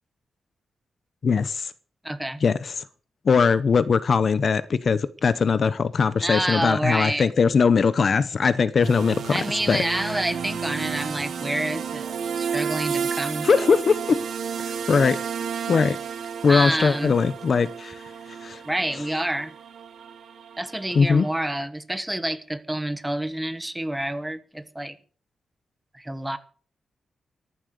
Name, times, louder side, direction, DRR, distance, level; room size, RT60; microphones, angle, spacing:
voice 1, 1.2-1.7 2.4-2.7 3.3-9.8 13.4-14.2 14.6-15.2 15.7-16.0 16.4-18.0 18.4-18.6 20.9-21.3, left 5 dB, 45° left, 0.8 m, -21 dB
voice 2, 2.0-2.4 6.2-7.3 9.3-13.7 16.5-17.2 18.6-19.5 20.6-25.0 25.9-26.4, right 1 dB, 5° right, 1.3 m, -28 dB
sound 1, 8.8-21.4, right 7 dB, 70° right, 2.8 m, -32 dB
14.0 x 11.5 x 6.6 m
wide cardioid pair, 155°, 0 cm